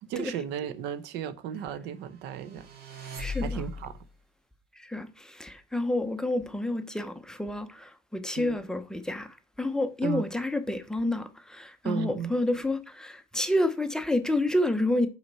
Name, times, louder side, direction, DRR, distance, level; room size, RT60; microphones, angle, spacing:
voice 1, 0.0-2.7 3.4-4.0 8.4-8.6 10.0-10.2 11.8-12.3, right 9 dB, 90° right, 0.7 m, -34 dB
sound 1, 2.3-4.1, left 3 dB, 60° right, 2.0 m, -37 dB
voice 2, 3.2-3.6 4.8-15.1, left 1 dB, 5° left, 0.8 m, -29 dB
5.6 x 4.5 x 5.5 m
cardioid pair, 110°, 17 cm